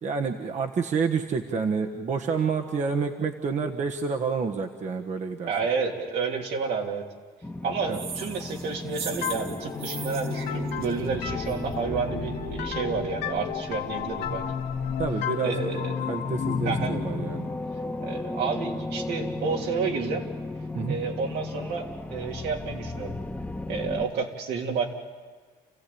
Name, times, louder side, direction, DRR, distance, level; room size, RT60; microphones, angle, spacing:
voice 1, 0.0-5.5 7.9-8.0 15.0-15.6 16.1-17.5 20.7-21.0, right 5 dB, 45° right, 3 dB, 1.4 m, -28 dB
voice 2, 5.4-7.0 7.6-14.6 15.4-16.0 16.6-16.9 18.0-20.2 20.9-23.2 23.7-24.9, right 5 dB, 80° right, 0 dB, 3.2 m, -30 dB
sound 1, 7.4-24.1, left 2 dB, 10° left, 1.3 m, -35 dB
sound 2, 7.9-11.7, right 6 dB, 65° right, 1.7 m, -39 dB
sound 3, 9.2-18.7, left 7 dB, 75° left, 2.3 m, -33 dB
29.5 x 15.5 x 8.7 m, 1.5 s
cardioid pair, 110°, 17 cm